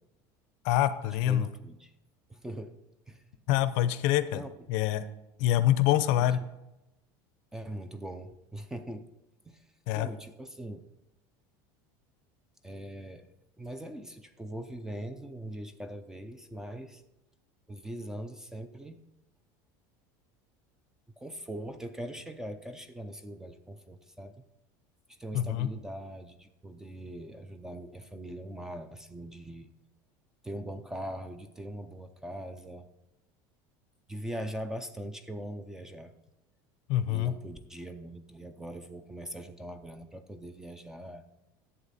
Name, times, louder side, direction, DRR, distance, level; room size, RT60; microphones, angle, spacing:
voice 1, 0.6-1.5 3.5-4.4 4.7-5.0 5.4-6.4 9.9-10.1 25.3-25.7 36.9-37.3, left 12 dB, 60° left, 13 dB, 0.6 m, -25 dB
voice 2, 1.3-1.9 2.3-2.8 3.1-3.3 4.3-4.5 6.2-6.4 7.5-9.1 9.4-9.6 9.9-10.8 12.6-13.3 13.6-17.0 17.7-19.0 21.2-24.4 25.1-29.7 30.4-32.9 34.1-36.1 37.1-41.2, right 1 dB, 5° right, 9 dB, 0.4 m, -41 dB
11.5 x 7.7 x 4.1 m, 0.93 s
cardioid pair, 170°, 10 cm